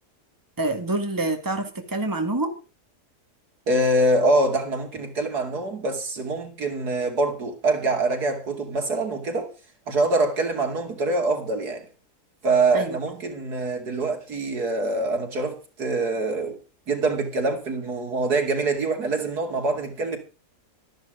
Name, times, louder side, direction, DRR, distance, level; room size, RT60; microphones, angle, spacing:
voice 1, 0.6-2.5 12.7-13.0, right 2 dB, 10° right, 2.1 m, -26 dB
voice 2, 3.7-9.5 9.9-11.9 12.4-16.6 16.9-20.2, right 2 dB, 75° right, 3.1 m, -24 dB
13.0 x 11.5 x 5.1 m
omnidirectional pair, 1.7 m